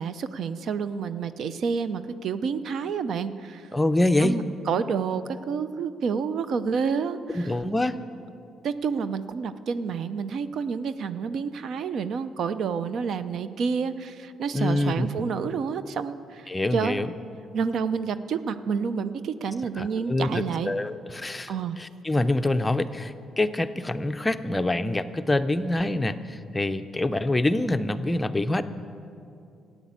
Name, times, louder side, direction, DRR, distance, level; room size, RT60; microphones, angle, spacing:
voice 1, 0.0-3.7 4.2-7.5 8.6-17.0 17.5-20.7 21.5-21.8, right 6 dB, 65° right, 13 dB, 0.6 m, -29 dB
voice 2, 3.7-4.4 7.3-8.0 14.5-15.1 16.5-17.1 19.8-28.6, left 1 dB, 15° left, 10 dB, 0.6 m, -25 dB
12.5 x 9.1 x 8.7 m, 2.6 s
cardioid pair, 90°, 0 cm